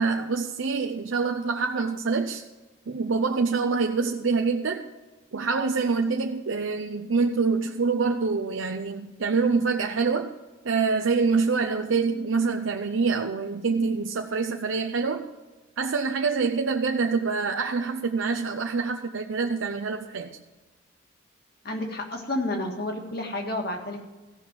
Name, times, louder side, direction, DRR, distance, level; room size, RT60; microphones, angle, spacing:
voice 1, 0.0-2.5 2.9-4.9 5.3-10.3 10.6-15.3 15.8-20.3, right 4 dB, 75° right, 4 dB, 0.7 m, -26 dB
voice 2, 21.6-24.1, left 1 dB, 50° left, 2 dB, 1.9 m, -30 dB
15.0 x 6.1 x 7.5 m, 1.2 s
head